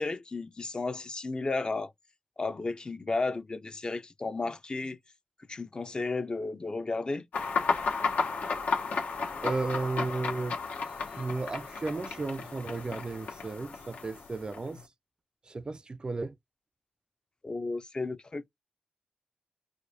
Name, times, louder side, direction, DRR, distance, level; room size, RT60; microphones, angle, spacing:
voice 1, 0.0-1.9 2.4-5.0 5.5-7.2 17.4-18.5, left 3 dB, 35° left, 0.5 m, -33 dB
sound 1, 7.3-14.8, left 4 dB, 85° left, 0.9 m, -33 dB
voice 2, 9.4-10.5 11.1-14.8 15.4-16.4, right 3 dB, 35° right, 0.3 m, -34 dB
4.9 x 2.2 x 2.6 m
wide cardioid pair, 85°, 3 cm